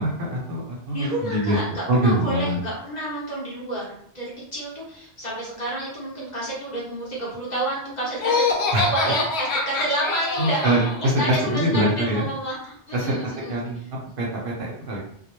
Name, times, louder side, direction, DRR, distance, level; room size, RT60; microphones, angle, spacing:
voice 1, 0.0-1.6 1.9-2.6 8.7-8.9 10.4-12.3 12.9-13.8 14.2-15.0, right 1 dB, 60° right, -3 dB, 0.7 m, -24 dB
voice 2, 0.9-13.8, right 1 dB, 45° left, -6 dB, 0.9 m, -30 dB
Laughter, 8.2-11.0, left 3 dB, 70° left, 0.8 m, -25 dB
2.2 x 2.1 x 2.9 m, 0.66 s
omnidirectional pair, 1.1 m